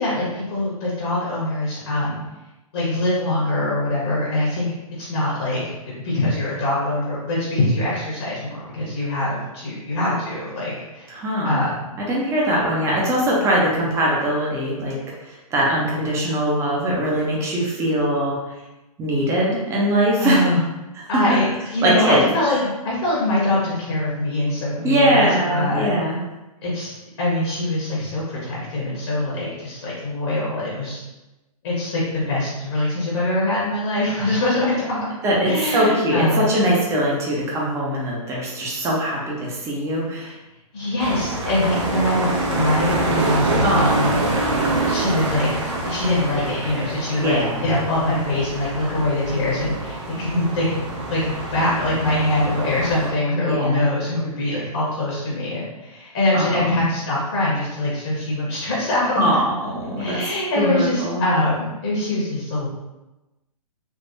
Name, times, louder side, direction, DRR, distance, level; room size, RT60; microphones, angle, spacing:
voice 1, 0.0-2.2 2.7-4.7 5.0-11.1 11.4-11.9 20.2-20.6 21.1-22.6 22.8-25.9 26.6-31.0 31.6-35.0 35.5-36.5 40.7-44.1 44.5-45.5 45.8-59.3 60.0-62.7, left 1 dB, 45° left, -6 dB, 1.2 m, -23 dB
voice 2, 11.1-11.6 12.1-15.0 15.5-18.4 19.0-20.4 21.3-21.4 21.8-22.2 22.4-22.6 24.8-26.2 35.2-40.3 43.6-44.3 47.2-47.6 53.5-53.9 56.3-56.9 59.2-60.2 60.6-61.2, right 1 dB, 15° right, -4 dB, 0.7 m, -21 dB
sound 1, 41.0-53.1, right 2 dB, 50° right, 0.7 m, -26 dB
3.6 x 2.8 x 2.7 m, 1.0 s
figure-of-eight pair, 120°, 19 cm